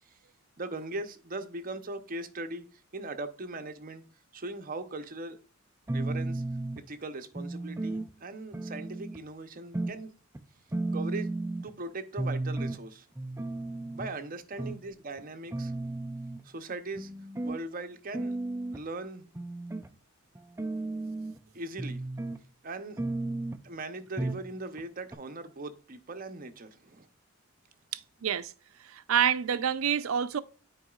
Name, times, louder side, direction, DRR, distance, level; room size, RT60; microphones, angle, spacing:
voice 1, 0.6-2.7 2.9-4.0 4.3-5.4 5.9-6.4 6.9-10.1 10.9-11.3 11.6-13.1 13.9-15.9 16.4-17.1 17.4-18.4 18.7-19.3 21.5-22.0 22.6-23.0 23.6-27.1, right 2 dB, 45° right, 0.8 m, -39 dB
sound 1, 5.9-6.8 7.4-8.1 8.5-9.2 9.7-10.0 10.4-10.5 10.7-11.7 12.2-12.8 13.2-14.1 14.6-14.8 15.2-15.3 15.5-16.4 17.0-17.6 18.1-18.8 19.4-19.9 20.4-21.4 21.8-22.4 23.0-23.6 24.2-24.5 24.8-24.9 25.1-25.2, right 2 dB, 10° right, 0.4 m, -34 dB
voice 2, 27.9-28.5 28.8-30.4, right 8 dB, 80° right, 0.5 m, -28 dB
9.1 x 4.8 x 2.4 m
head